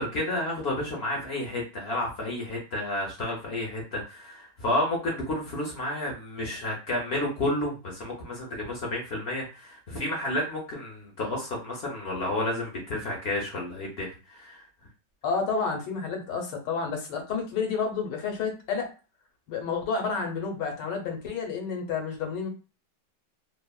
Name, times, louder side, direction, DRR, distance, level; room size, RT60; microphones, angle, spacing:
voice 1, 0.0-14.7, left 1 dB, 65° left, -1 dB, 0.6 m, -31 dB
voice 2, 15.2-18.9 19.5-22.5, left 5 dB, 85° left, 3 dB, 1.4 m, -30 dB
3.2 x 2.0 x 2.3 m, 0.32 s
omnidirectional pair, 1.8 m